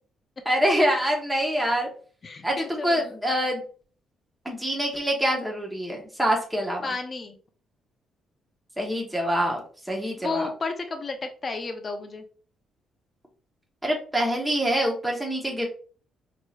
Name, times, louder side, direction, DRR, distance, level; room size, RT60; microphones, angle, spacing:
voice 1, 0.4-1.9 2.4-3.6 4.4-6.9 8.8-9.6 9.9-10.5 13.8-15.7, equal, 5° right, -1 dB, 1.0 m, -25 dB
voice 2, 2.2-3.1 6.8-7.4 10.2-12.2, left 3 dB, 35° left, 6 dB, 0.7 m, -32 dB
4.6 x 3.0 x 2.4 m, 0.42 s
cardioid pair, 90°, 0 cm